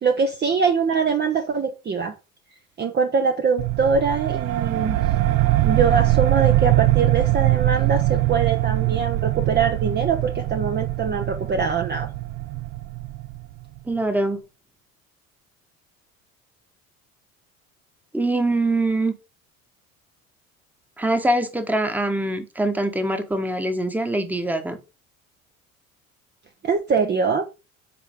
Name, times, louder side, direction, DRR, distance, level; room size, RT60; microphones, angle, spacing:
voice 1, 0.0-2.1 2.8-5.0 5.6-12.1 26.6-27.5, right 5 dB, 25° right, 0.9 m, -23 dB
sound 1, 3.6-13.8, right 16 dB, 50° right, 0.6 m, -22 dB
voice 2, 13.9-14.4 18.1-19.1 21.0-24.8, right 1 dB, 5° right, 1.3 m, -23 dB
7.8 x 4.6 x 5.1 m
figure-of-eight pair, 65°, 42 cm